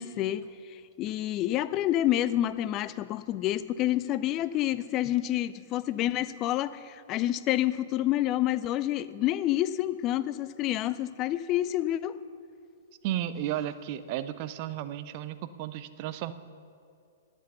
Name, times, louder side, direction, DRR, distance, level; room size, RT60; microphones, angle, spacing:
voice 1, 0.0-12.2, left 13 dB, 30° left, 16 dB, 0.4 m, -28 dB
voice 2, 13.0-16.3, right 12 dB, 40° right, 13 dB, 0.5 m, -33 dB
12.5 x 8.0 x 6.8 m, 2.4 s
figure-of-eight pair, 110°, 0 cm